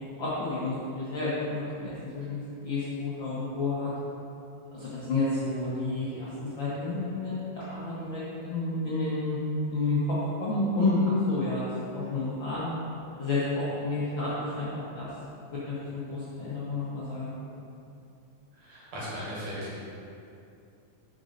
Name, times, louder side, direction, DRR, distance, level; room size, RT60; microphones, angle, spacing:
voice 1, 0.0-3.9 4.7-9.4 9.7-10.0 10.4-11.6 11.9-12.7 13.2-15.1 15.7-17.3, left 3 dB, 60° left, -10 dB, 1.3 m, -30 dB
voice 2, 18.5-19.8, equal, 65° right, -8 dB, 2.8 m, -37 dB
5.3 x 5.2 x 5.1 m, 2.7 s
omnidirectional pair, 3.4 m